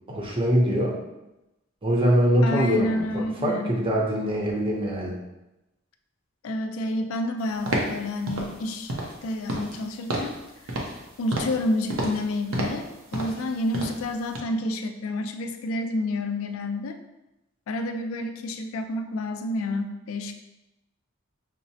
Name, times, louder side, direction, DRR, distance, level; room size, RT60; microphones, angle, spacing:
voice 1, 0.1-1.0 1.8-5.2, equal, 25° right, -2 dB, 0.7 m, -23 dB
voice 2, 2.4-3.8 6.4-8.9 9.2-10.4 11.2-17.0 17.7-20.3, left 1 dB, 90° left, 7 dB, 0.4 m, -29 dB
sound 1, 7.7-8.0 8.3-8.5 8.9-9.2 9.5-9.8 10.1-10.4 10.7-11.0 11.3-11.6 11.9-12.2 12.5-12.9 13.1-13.4 13.7-14.0 14.3-14.4, right 1 dB, 90° right, 0.7 m, -29 dB
5.6 x 2.0 x 2.7 m, 0.95 s
head